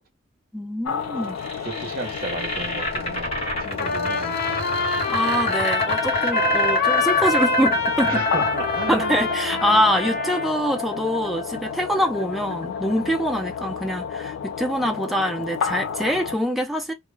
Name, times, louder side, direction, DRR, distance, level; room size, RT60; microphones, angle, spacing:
voice 1, 0.5-1.4 5.1-8.1 8.9-16.9, equal, ahead, 0.4 m, -24 dB
sound 1, 0.8-16.4, left 7 dB, 80° left, 0.3 m, -32 dB
sound 2, 1.0-13.1, equal, 30° left, 1.1 m, -28 dB
voice 2, 1.6-4.6 8.0-9.2, right 3 dB, 45° right, 0.7 m, -33 dB
Trumpet, 3.8-10.5, left 4 dB, 45° left, 0.6 m, -26 dB
2.0 x 2.0 x 3.2 m
head